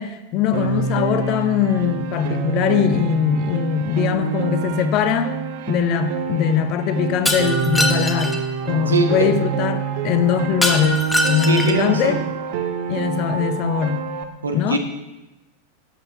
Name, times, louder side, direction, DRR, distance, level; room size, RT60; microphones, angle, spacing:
voice 1, 0.0-5.3 5.7-11.0 11.3-12.2 12.9-14.1 14.5-14.8, left 8 dB, 40° left, 0.7 m, -21 dB
Piano, 0.5-14.2, right 6 dB, 50° right, 0.9 m, -27 dB
Shatter, 7.3-8.4 10.6-11.9, left 1 dB, 10° left, 1.0 m, -22 dB
voice 2, 8.9-9.3 11.4-12.2 14.4-14.8, right 4 dB, 75° right, 1.2 m, -22 dB
11.0 x 8.0 x 3.7 m
figure-of-eight pair, 90°, 0 cm